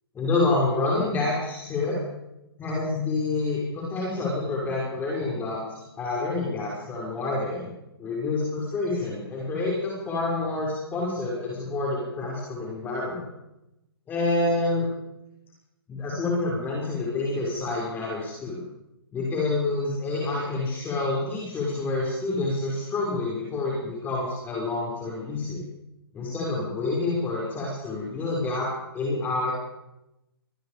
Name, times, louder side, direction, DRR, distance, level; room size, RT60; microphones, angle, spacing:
voice 1, 0.1-2.0 2.6-7.7 8.0-13.3 14.1-14.9 15.9-18.6 19.1-25.6 26.1-29.5, left 2 dB, 15° left, -4 dB, 6.3 m, -28 dB
25.5 x 21.0 x 5.3 m, 0.90 s
hypercardioid pair, 145°, 13 cm